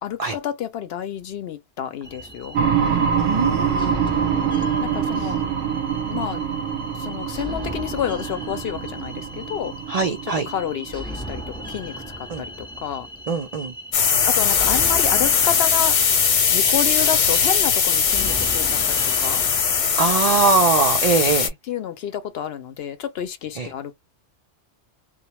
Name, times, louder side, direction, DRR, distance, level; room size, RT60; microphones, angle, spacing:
voice 1, 0.0-2.6 3.8-4.4 4.8-5.4 6.1-6.4 7.0-9.7 10.5-11.4 11.7-11.9 12.4-12.5 12.8-13.1 14.3-15.9 16.5-19.4 21.7-23.9, left 9 dB, 65° left, 0.7 m, -29 dB
sound 1, 2.0-19.8, right 1 dB, 5° left, 0.4 m, -37 dB
sound 2, 2.5-12.1, right 7 dB, 90° right, 0.9 m, -25 dB
voice 2, 2.8-5.3 9.9-10.5 12.3-12.4 13.3-13.7 20.0-21.5 23.6-23.7, right 4 dB, 65° right, 0.3 m, -23 dB
sound 3, 13.9-21.5, left 7 dB, 85° left, 1.1 m, -20 dB
2.2 x 2.0 x 2.8 m
omnidirectional pair, 1.2 m